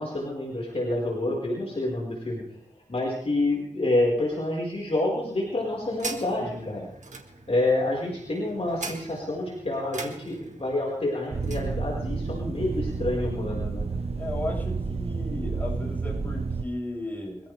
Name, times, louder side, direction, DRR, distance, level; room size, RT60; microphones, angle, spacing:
voice 1, 0.0-2.4 2.9-6.9 7.5-13.9, left 2 dB, 50° left, -3 dB, 4.8 m, -28 dB
sound 1, 5.1-11.7, right 3 dB, 65° right, 2.2 m, -42 dB
sound 2, 11.3-16.6, right 4 dB, 50° right, 0.8 m, -30 dB
voice 2, 14.2-17.5, left 1 dB, 15° left, -4 dB, 7.4 m, -35 dB
25.0 x 15.5 x 3.5 m, 0.69 s
wide cardioid pair, 80°, 13 cm